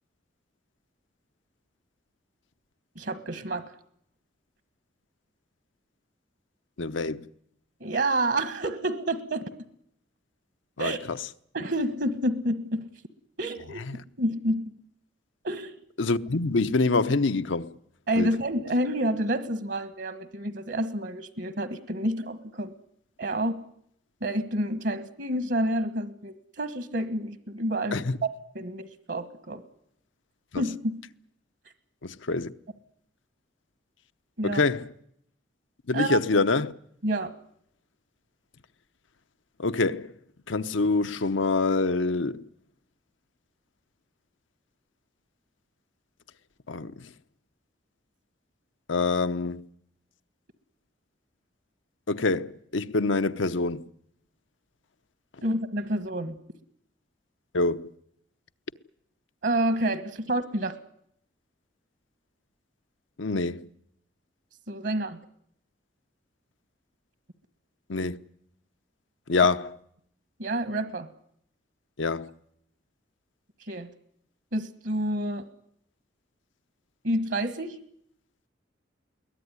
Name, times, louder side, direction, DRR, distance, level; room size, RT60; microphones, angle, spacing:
voice 1, 2.9-3.7 7.8-9.5 10.8-11.0 11.5-12.9 13.4-13.8 14.2-14.7 15.4-15.8 18.1-22.7 23.2-23.5 24.2-28.0 28.5-29.6 30.5-31.0 34.4-34.6 35.9-36.2 37.0-37.3 55.4-56.4 59.4-60.7 64.7-65.2 70.4-71.1 73.6-73.9 74.5-75.4 77.0-77.8, right 1 dB, 65° right, 1.4 m, -29 dB
voice 2, 6.8-7.3 10.8-11.2 13.8-14.0 16.0-17.7 18.2-18.3 27.9-28.2 30.5-30.6 32.0-32.5 34.4-34.9 35.9-36.7 39.6-40.1 40.5-42.4 46.7-47.1 48.9-49.6 52.1-53.9 57.5-57.9 63.2-63.7 67.9-68.2 69.3-69.8 72.0-72.3, left 3 dB, 90° left, 0.9 m, -26 dB
22.0 x 18.5 x 9.8 m
head